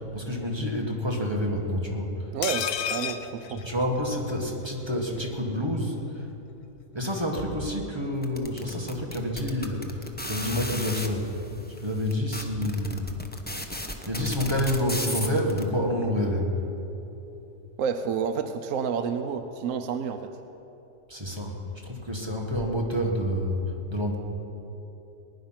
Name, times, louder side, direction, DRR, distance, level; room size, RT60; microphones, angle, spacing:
voice 1, 0.0-2.3 3.5-6.3 6.9-11.3 11.7-13.1 14.1-16.6 21.1-24.2, equal, 15° right, -1 dB, 1.6 m, -28 dB
voice 2, 2.3-3.6 17.8-20.3, right 6 dB, 65° right, 7 dB, 0.9 m, -29 dB
sound 1, 2.4-4.4 4.7-4.8 5.0-5.2, left 9 dB, 70° left, 1.1 m, -32 dB
sound 2, 8.2-11.1 11.8-11.9 12.1-15.6, left 1 dB, 10° left, 0.6 m, -34 dB
20.0 x 10.5 x 5.8 m, 3.0 s
omnidirectional pair, 1.8 m